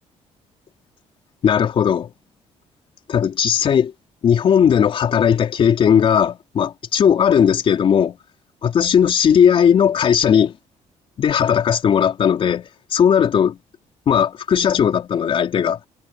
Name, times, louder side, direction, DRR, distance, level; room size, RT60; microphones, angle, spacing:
voice 1, 1.4-2.1 3.1-3.9 4.2-8.2 8.6-10.5 11.2-13.6 14.1-15.8, left 8 dB, 50° left, 4.0 m, -17 dB
cardioid pair, 135°, 12 cm